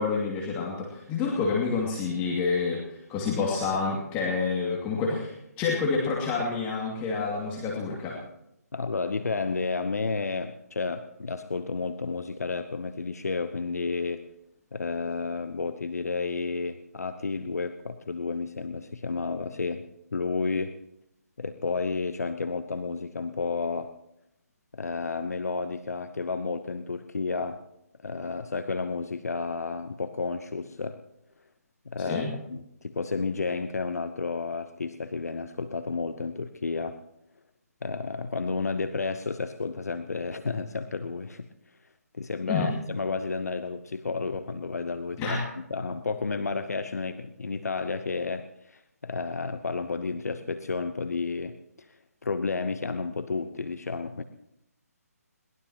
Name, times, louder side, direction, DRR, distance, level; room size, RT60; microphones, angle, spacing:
voice 1, 0.0-8.2 32.1-32.3 42.5-42.7 45.2-45.4, left 4 dB, 20° left, -3 dB, 2.4 m, -28 dB
voice 2, 8.7-14.2 14.7-19.8 20.1-20.7 21.4-23.9 24.7-27.6 28.0-31.0 31.9-37.0 37.8-41.5 42.2-54.2, left 4 dB, 70° left, 10 dB, 0.9 m, -31 dB
21.5 x 19.5 x 3.0 m, 0.81 s
figure-of-eight pair, 145°, 9 cm